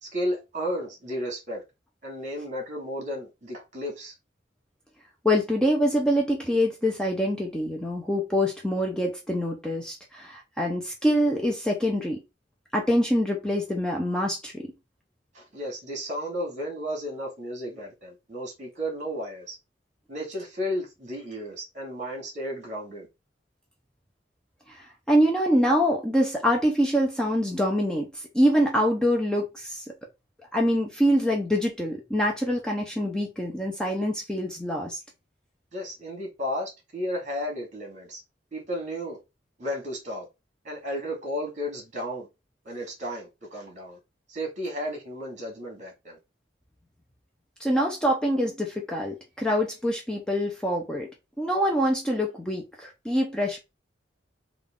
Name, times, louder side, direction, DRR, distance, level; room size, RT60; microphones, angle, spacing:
voice 1, 0.0-1.6 2.0-4.1 15.4-19.6 20.1-23.1 35.7-38.2 38.5-39.2 39.6-40.3 40.7-42.3 42.7-44.0 44.3-46.2, equal, 40° right, 1.7 m, -33 dB
voice 2, 5.2-12.2 12.7-14.7 24.7-29.8 30.5-35.0 47.6-51.1 51.4-53.6, equal, 5° left, 0.6 m, -25 dB
3.8 x 2.4 x 3.6 m
head